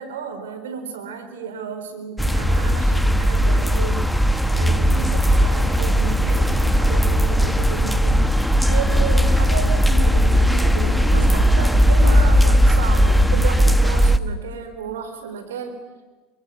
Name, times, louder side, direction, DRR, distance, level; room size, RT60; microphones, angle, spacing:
voice 1, 0.0-4.2 4.5-8.3 8.7-15.8, right 5 dB, 75° right, 7 dB, 4.0 m, -32 dB
sound 1, 2.2-14.2, equal, ahead, 1.5 m, -17 dB
28.0 x 25.0 x 8.5 m, 1.3 s
hypercardioid pair, 80°, 0 cm